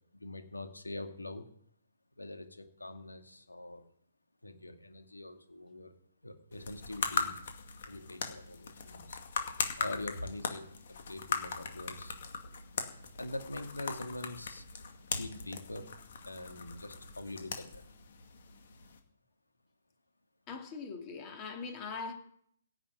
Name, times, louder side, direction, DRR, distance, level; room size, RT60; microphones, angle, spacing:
voice 1, 0.1-1.5 2.2-3.8 4.4-5.9 6.2-7.4 7.9-9.2 9.8-10.7 11.1-12.2 13.1-14.6 15.1-15.9 16.3-17.8, left 1 dB, 90° left, 2.2 m, -43 dB
sound 1, 6.5-19.0, left 5 dB, 55° left, 2.2 m, -39 dB
voice 2, 20.5-22.1, left 5 dB, 25° left, 2.5 m, -41 dB
16.5 x 6.5 x 9.1 m
figure-of-eight pair, 135°, 0 cm